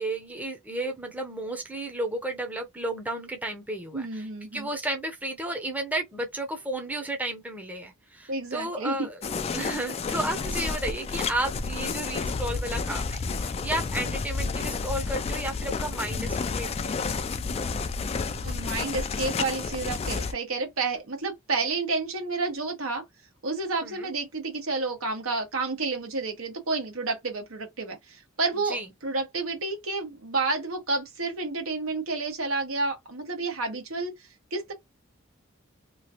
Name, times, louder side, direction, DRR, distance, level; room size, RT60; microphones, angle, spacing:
voice 1, 0.0-17.1 23.8-24.1 28.5-28.9, right 1 dB, 10° right, 0.6 m, -33 dB
voice 2, 3.9-4.7 8.3-9.1 18.4-23.0 23.4-34.1 34.5-34.7, right 3 dB, 90° right, 1.3 m, -30 dB
sound 1, 9.2-20.3, left 4 dB, 30° left, 0.3 m, -30 dB
3.0 x 2.4 x 2.8 m
head